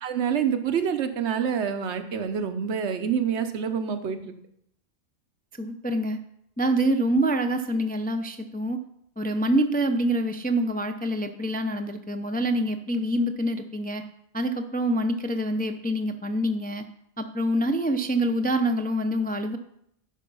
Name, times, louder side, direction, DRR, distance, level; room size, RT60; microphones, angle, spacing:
voice 1, 0.0-4.3, right 7 dB, 85° right, 8 dB, 1.1 m, -27 dB
voice 2, 5.6-6.2 6.6-8.8 9.2-14.0 14.3-16.8 17.2-19.6, right 1 dB, 15° left, 6 dB, 0.3 m, -26 dB
11.0 x 5.1 x 5.4 m, 0.74 s
omnidirectional pair, 1.1 m